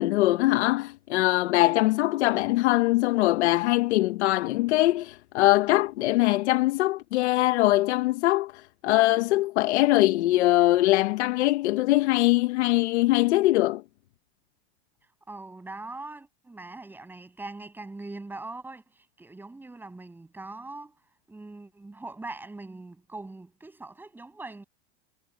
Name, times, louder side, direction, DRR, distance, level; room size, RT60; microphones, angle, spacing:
voice 1, 0.0-13.8, left 17 dB, 70° left, 1.1 m, -22 dB
voice 2, 15.3-20.9 21.3-24.6, right 2 dB, 5° right, 7.8 m, -41 dB
supercardioid pair, 170°, 36 cm